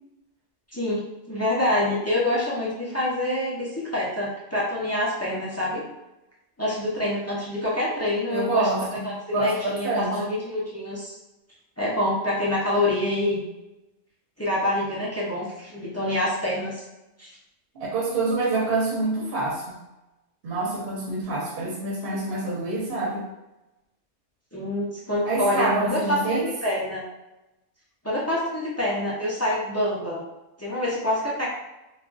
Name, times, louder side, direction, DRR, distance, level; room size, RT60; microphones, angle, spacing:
voice 1, 0.7-5.8 6.6-8.6 9.0-11.2 11.8-13.4 14.4-16.8 17.2-17.3 24.5-27.0 28.0-30.2 30.6-31.5, left 1 dB, 20° left, -7 dB, 0.4 m, -26 dB
voice 2, 8.3-9.1 9.3-10.1 17.7-19.8 20.4-23.2 25.2-26.5, right 2 dB, 55° right, -4 dB, 0.9 m, -26 dB
2.3 x 2.3 x 3.8 m, 0.98 s
omnidirectional pair, 1.2 m